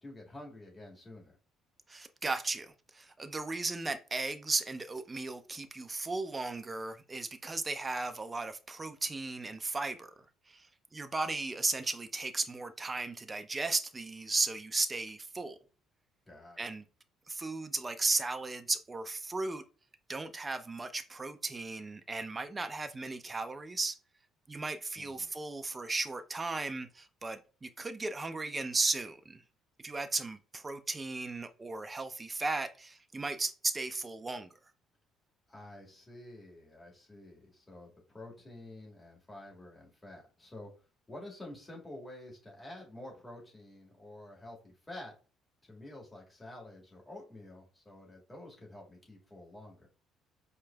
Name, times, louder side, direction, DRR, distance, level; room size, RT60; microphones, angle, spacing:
voice 1, 0.0-1.4 16.3-16.6 24.9-25.4 35.5-40.7 41.1-45.1 45.6-49.9, left 1 dB, 20° left, 1.8 m, -49 dB
voice 2, 1.9-10.1 10.5-10.7 10.9-15.6 16.6-16.8 17.3-19.6 20.1-24.0 24.5-29.4 29.8-34.5, right 3 dB, 25° right, 0.4 m, -35 dB
4.5 x 2.8 x 2.3 m
figure-of-eight pair, 50°, 0 cm